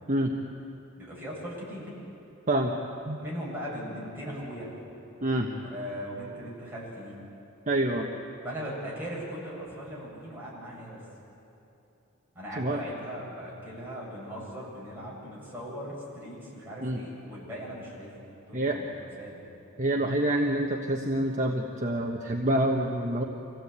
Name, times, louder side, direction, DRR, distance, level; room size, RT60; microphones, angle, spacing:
voice 1, 1.0-1.9 3.2-4.7 5.6-7.2 8.4-11.0 12.3-18.1 18.5-18.9 19.2-19.4, equal, 10° right, -6 dB, 7.8 m, -39 dB
voice 2, 7.7-8.1 12.6-12.8 16.8-17.0 18.5-18.8 19.8-23.2, right 1 dB, 35° right, 1 dB, 1.2 m, -27 dB
26.0 x 16.5 x 8.2 m, 2.9 s
head